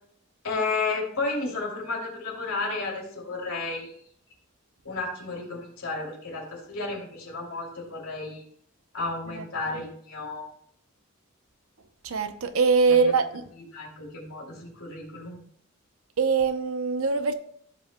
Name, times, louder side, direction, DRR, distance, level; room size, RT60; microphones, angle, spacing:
voice 1, 0.4-3.9 4.8-8.4 8.9-10.5 12.9-13.1 13.7-15.4, left 3 dB, 80° left, 2.8 m, -32 dB
voice 2, 12.0-13.5 16.2-17.3, right 5 dB, 75° right, 0.7 m, -23 dB
15.5 x 5.7 x 2.2 m
head